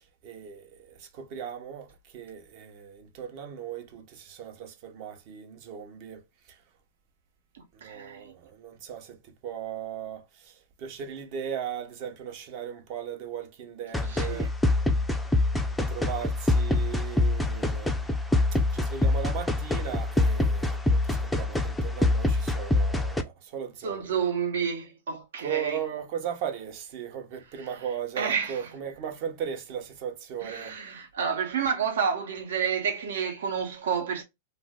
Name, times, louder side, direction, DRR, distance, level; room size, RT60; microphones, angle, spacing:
voice 1, 0.0-6.2 6.5-6.6 7.7-14.5 15.9-18.0 18.7-24.1 25.4-30.8, right 8 dB, 45° right, 0.8 m, -37 dB
voice 2, 7.5-8.3 14.1-14.5 23.8-25.8 27.6-27.7 28.2-28.7 30.4-34.2, right 7 dB, 80° right, 1.1 m, -30 dB
sound 1, 13.9-23.2, left 2 dB, 5° left, 0.3 m, -25 dB
2.6 x 2.1 x 3.5 m
hypercardioid pair, 130°, 0 cm